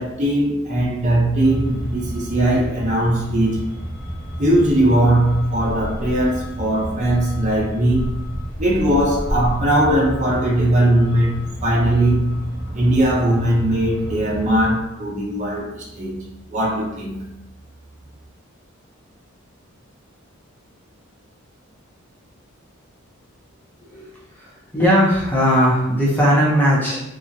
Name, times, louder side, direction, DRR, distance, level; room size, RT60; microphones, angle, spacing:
voice 1, 0.0-3.6 4.4-8.2 8.6-12.4 12.7-16.2 16.5-17.2, right 1 dB, 35° right, 0.6 m, -19 dB
Truck, 1.4-14.7, equal, 50° left, 0.8 m, -31 dB
voice 2, 24.4-27.0, equal, 10° left, 0.6 m, -18 dB
2.8 x 2.3 x 2.6 m
head